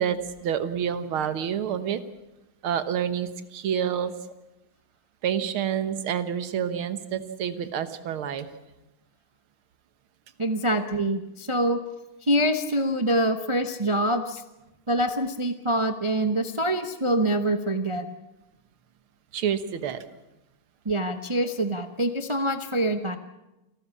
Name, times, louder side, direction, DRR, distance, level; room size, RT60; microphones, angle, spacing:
voice 1, 0.0-2.0 2.6-4.1 5.2-8.5 19.3-20.0, right 8 dB, 85° right, 12 dB, 2.1 m, -28 dB
voice 2, 10.4-11.8 12.2-14.4 14.9-18.1 20.8-23.2, right 1 dB, 35° right, 8 dB, 0.5 m, -25 dB
28.5 x 13.0 x 8.4 m, 0.98 s
omnidirectional pair, 2.3 m